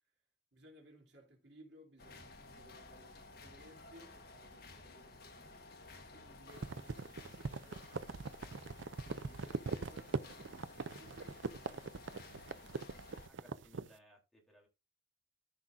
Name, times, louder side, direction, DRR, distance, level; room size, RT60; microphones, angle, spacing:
voice 1, 0.5-8.5 9.0-13.0, equal, 65° right, 2.8 m, -62 dB
sound 1, 2.0-13.3, left 3 dB, 55° left, 1.6 m, -55 dB
sound 2, 6.5-13.9, right 4 dB, 85° right, 0.6 m, -41 dB
voice 2, 13.3-14.7, equal, ahead, 3.0 m, -64 dB
14.0 x 5.9 x 2.5 m
head